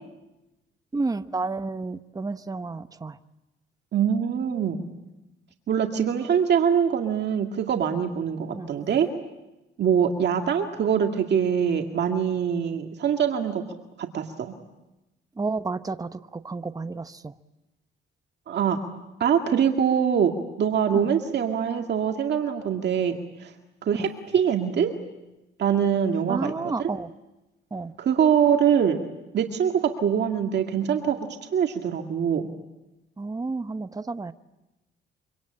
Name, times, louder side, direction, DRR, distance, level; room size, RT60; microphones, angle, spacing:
voice 1, 0.9-3.2 8.5-8.7 15.4-17.3 20.9-21.1 24.0-24.1 26.3-27.1 27.7-27.9 33.2-34.3, right 3 dB, 20° right, 11 dB, 0.9 m, -31 dB
voice 2, 3.9-4.8 5.7-9.1 9.8-13.6 14.0-14.5 18.5-18.8 19.2-20.3 20.6-23.5 23.8-24.9 25.6-26.5 26.8-26.9 28.0-29.0 29.3-31.2 31.5-32.5, right 8 dB, 60° right, 4 dB, 2.0 m, -23 dB
25.5 x 25.5 x 8.7 m, 0.98 s
cardioid pair, 90°, 20 cm